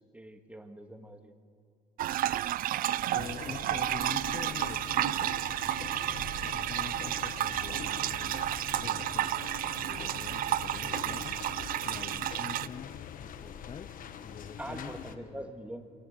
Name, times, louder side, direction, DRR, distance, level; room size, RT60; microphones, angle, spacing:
voice 1, 0.0-1.3 14.6-15.8, right 1 dB, 10° right, 5 dB, 1.8 m, -43 dB
sound 1, 2.0-12.7, right 13 dB, 55° right, 0.5 m, -32 dB
sound 2, 2.6-13.6, left 10 dB, 75° left, 0.6 m, -51 dB
voice 2, 2.6-5.4 6.4-8.4 8.8-9.3 9.6-13.9 14.2-15.5, left 6 dB, 35° left, 12 dB, 0.6 m, -46 dB
sound 3, 3.2-15.1, left 8 dB, 55° left, 1.2 m, -44 dB
24.0 x 17.5 x 8.1 m, 2.2 s
cardioid pair, 110°, 17 cm